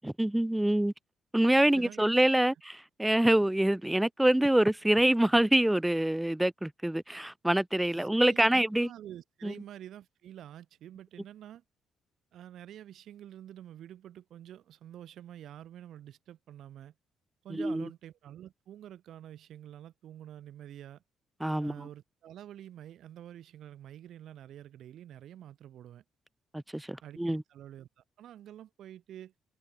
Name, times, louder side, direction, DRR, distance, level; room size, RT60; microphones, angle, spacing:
voice 1, 0.0-0.9 1.3-8.9 9.4-9.5 17.5-17.9 21.4-21.7 26.5-27.4, right 1 dB, 5° right, 0.6 m, -26 dB
voice 2, 1.7-2.0 7.9-11.6 12.3-16.9 17.4-21.0 21.6-26.0 27.0-29.3, right 11 dB, 70° right, 2.0 m, -48 dB
cardioid pair, 120°, 0 cm